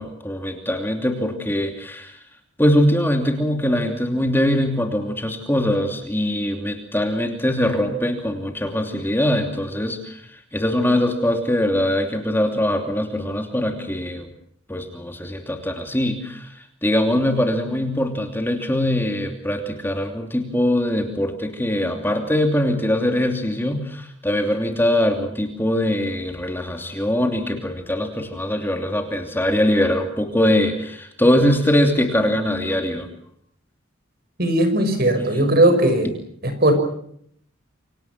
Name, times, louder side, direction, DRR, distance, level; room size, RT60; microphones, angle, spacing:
voice 1, 0.0-2.2 2.6-14.3 14.7-33.1 35.4-35.6, left 1 dB, 10° left, 4 dB, 2.8 m, -22 dB
voice 2, 34.4-36.1 36.4-36.7, right 1 dB, 50° right, 8 dB, 5.9 m, -18 dB
28.5 x 25.0 x 6.1 m, 0.68 s
head